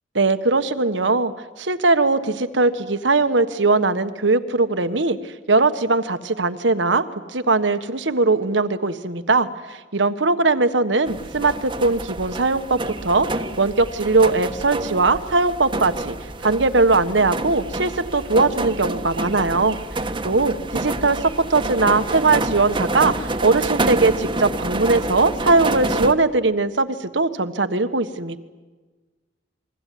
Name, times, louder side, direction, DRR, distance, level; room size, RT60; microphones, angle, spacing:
voice 1, 0.1-1.3 1.6-7.0 7.3-13.3 13.6-16.1 16.4-28.4, right 3 dB, 80° right, 10 dB, 1.4 m, -20 dB
sound 1, 11.1-26.1, right 2 dB, 25° right, 1.3 m, -28 dB
28.5 x 22.0 x 9.4 m, 1.3 s
head